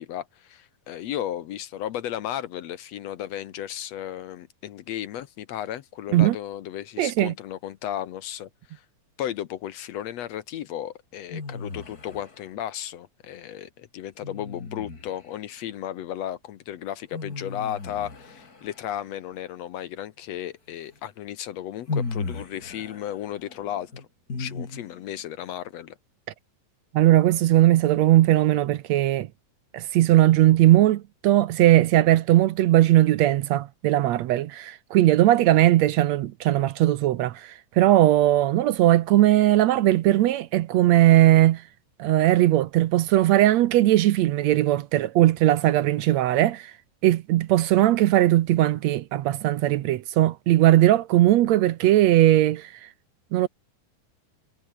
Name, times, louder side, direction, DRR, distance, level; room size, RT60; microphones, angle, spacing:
voice 1, 0.0-8.8 9.2-24.0 24.4-26.0, left 11 dB, 65° left, 1.7 m, -34 dB
voice 2, 7.0-7.3 26.9-29.3 29.7-41.6 42.0-46.7 47.0-52.7 53.3-53.5, right 14 dB, 75° right, 1.6 m, -19 dB
sound 1, 11.3-12.5 14.2-15.4 17.1-19.1 20.9-21.0 21.9-25.2, left 3 dB, 25° left, 3.5 m, -36 dB
omnidirectional pair, 4.0 m